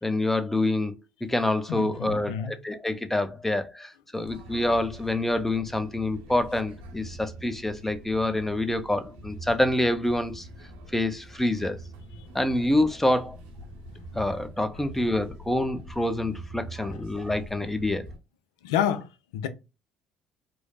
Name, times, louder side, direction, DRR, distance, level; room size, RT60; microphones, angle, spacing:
voice 1, 0.0-10.5 10.9-11.8 12.3-13.4 14.1-18.1, left 1 dB, 10° left, 0.5 m, -27 dB
voice 2, 1.7-2.6 4.2-4.3 18.6-19.5, left 9 dB, 80° left, 0.4 m, -29 dB
sound 1, 4.2-18.2, right 1 dB, 75° right, 0.8 m, -44 dB
3.1 x 2.0 x 2.3 m
hypercardioid pair, 60°, 3 cm